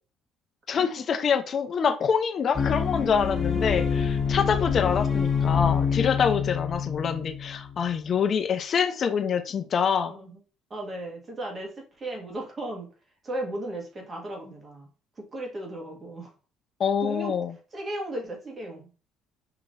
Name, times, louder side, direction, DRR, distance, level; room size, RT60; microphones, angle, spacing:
voice 1, 0.7-10.1 16.8-17.5, left 7 dB, 45° left, 0.7 m, -26 dB
sound 1, 2.5-7.9, left 6 dB, 30° left, 1.4 m, -26 dB
voice 2, 10.1-10.4 10.7-12.9 13.2-14.9 15.2-16.3 17.0-17.3 17.7-18.9, right 1 dB, 30° right, 1.8 m, -36 dB
5.7 x 3.0 x 2.6 m
supercardioid pair, 85°, 0 cm